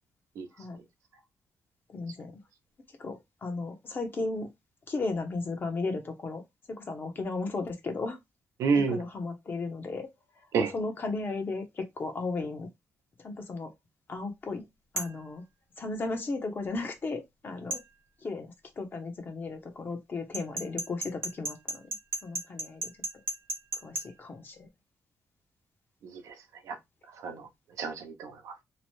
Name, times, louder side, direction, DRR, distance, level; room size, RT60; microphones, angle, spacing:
voice 1, 1.9-2.4 3.0-4.5 4.9-6.4 6.7-8.2 8.7-10.1 10.4-12.7 13.2-13.7 14.1-14.7 14.9-15.4 15.8-17.8 18.2-21.8 22.2-22.9 23.8-24.7, left 3 dB, 40° left, 0.8 m, -35 dB
voice 2, 8.6-9.0 10.5-10.7 26.0-26.3 26.7-26.8 27.2-27.5 27.8-28.5, right 5 dB, 90° right, 0.7 m, -29 dB
sound 1, 15.0-15.2 17.7-17.9 20.3-24.1, right 2 dB, 45° right, 0.9 m, -34 dB
2.9 x 2.1 x 3.0 m
cardioid pair, 100°, 5 cm